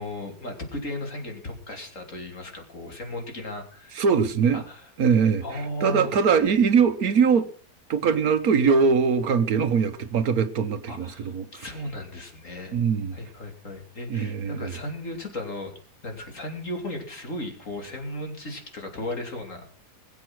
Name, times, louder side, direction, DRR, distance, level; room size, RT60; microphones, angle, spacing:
voice 1, 0.0-4.0 4.5-4.9 5.4-6.1 10.9-12.7 13.1-15.7 16.0-19.8, left 1 dB, 50° left, 3.3 m, -35 dB
voice 2, 3.9-4.6 5.0-7.5 7.9-11.6 12.7-13.1 14.1-14.7, right 6 dB, 65° right, 1.4 m, -22 dB
21.0 x 8.1 x 6.0 m
omnidirectional pair, 1.7 m